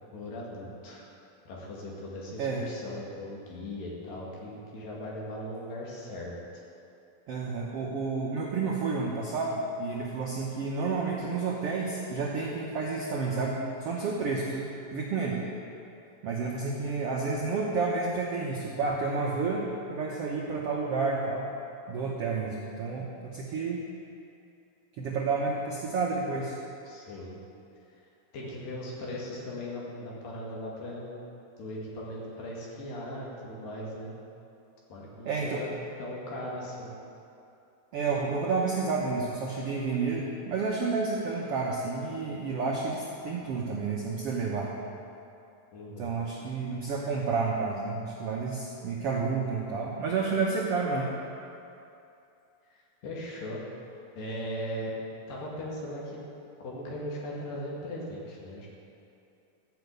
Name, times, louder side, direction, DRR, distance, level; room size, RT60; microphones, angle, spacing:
voice 1, 0.1-1.0 1.5-6.4 26.9-27.4 28.3-31.2 31.6-34.2 34.9-35.7 36.0-36.9 45.7-46.1 52.7-53.6 54.2-54.9 55.3-56.3 56.6-58.7, left 1 dB, 65° left, -4 dB, 3.7 m, -38 dB
voice 2, 7.3-15.4 16.2-19.6 19.9-21.5 21.9-23.8 25.0-26.5 35.2-35.6 37.9-44.7 46.0-51.1, right 4 dB, 85° right, -3 dB, 1.3 m, -30 dB
14.0 x 6.0 x 8.2 m, 2.7 s
omnidirectional pair, 4.3 m